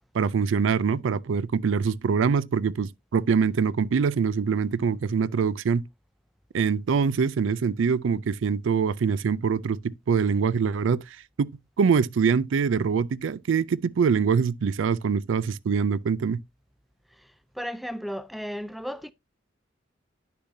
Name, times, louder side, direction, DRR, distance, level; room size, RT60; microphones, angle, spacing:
voice 1, 0.1-5.8 6.5-11.0 11.4-11.5 11.8-16.4, right 6 dB, 75° right, 0.4 m, -24 dB
voice 2, 17.6-19.1, equal, ahead, 0.4 m, -34 dB
9.8 x 6.7 x 2.7 m
head